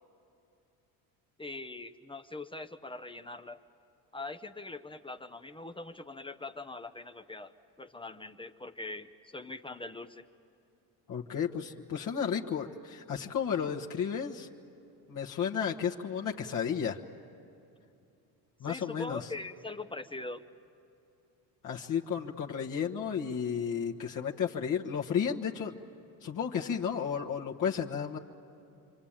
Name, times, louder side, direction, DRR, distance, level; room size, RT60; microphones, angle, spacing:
voice 1, 1.4-3.6 4.1-7.5 7.8-10.3 18.7-20.4, left 2 dB, 10° left, 8 dB, 0.7 m, -42 dB
voice 2, 11.1-14.5 15.1-17.0 18.6-19.3 21.6-25.8 26.2-28.2, left 7 dB, 45° left, 0 dB, 1.3 m, -33 dB
27.5 x 24.5 x 8.8 m, 2.7 s
supercardioid pair, 100°, 42 cm